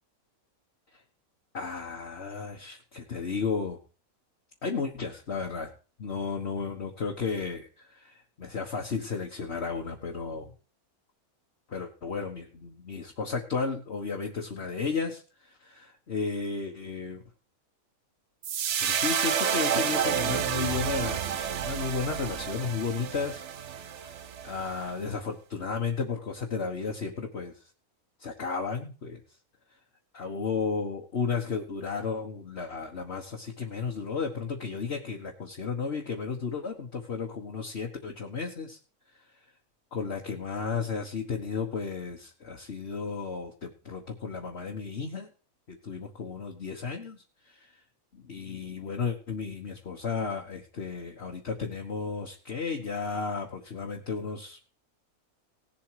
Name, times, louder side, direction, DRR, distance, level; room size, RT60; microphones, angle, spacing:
voice 1, 1.5-3.8 4.6-5.7 6.0-10.5 11.7-17.2 18.8-23.4 24.0-27.5 28.2-29.2 30.1-38.8 39.9-45.3 45.7-47.7 48.1-54.6, left 5 dB, 45° left, 0 dB, 1.6 m, -33 dB
sound 1, 18.4-24.8, right 8 dB, 60° right, 1.0 m, -30 dB
18.0 x 7.4 x 4.8 m, 0.36 s
omnidirectional pair, 1.5 m